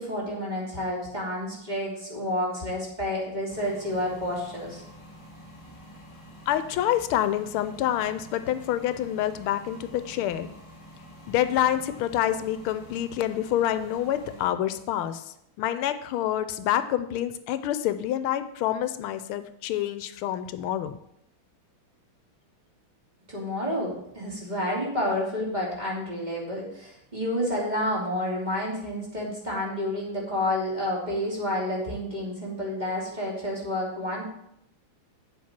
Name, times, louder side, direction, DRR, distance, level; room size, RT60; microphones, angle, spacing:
voice 1, 0.0-4.8 23.3-34.2, left 1 dB, 20° right, -4 dB, 2.6 m, -30 dB
sound 1, 3.5-14.5, equal, 25° left, 2.4 m, -48 dB
voice 2, 6.5-10.5 11.3-21.0, left 11 dB, 85° left, 12 dB, 1.5 m, -27 dB
8.8 x 7.4 x 4.3 m, 0.76 s
omnidirectional pair, 2.3 m